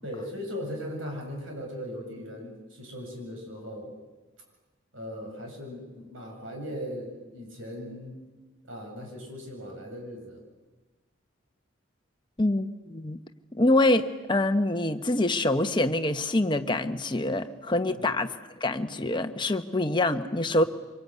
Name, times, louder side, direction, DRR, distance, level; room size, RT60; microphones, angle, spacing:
voice 1, 0.0-3.9 4.9-8.2 8.6-10.4 18.0-18.2, equal, 70° right, 1 dB, 7.9 m, -38 dB
voice 2, 12.4-13.2 13.5-20.6, left 2 dB, 20° left, 7 dB, 1.1 m, -25 dB
25.0 x 22.5 x 9.5 m, 1.2 s
head